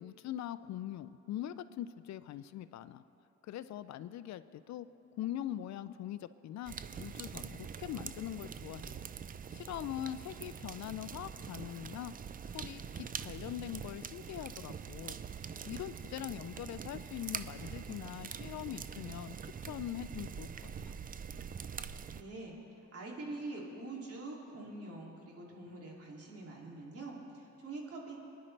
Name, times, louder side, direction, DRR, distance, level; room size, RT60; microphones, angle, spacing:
voice 1, 0.0-3.0 3.4-4.9 5.2-9.0 9.5-12.1 12.5-15.2 15.6-19.3 19.6-20.9, left 12 dB, 65° left, 14 dB, 0.5 m, -42 dB
sound 1, 6.7-22.2, right 7 dB, 30° right, 0.4 m, -44 dB
voice 2, 22.1-28.2, right 2 dB, 50° right, -2 dB, 2.7 m, -45 dB
22.0 x 10.0 x 3.3 m, 2.8 s
cardioid pair, 90°, 30 cm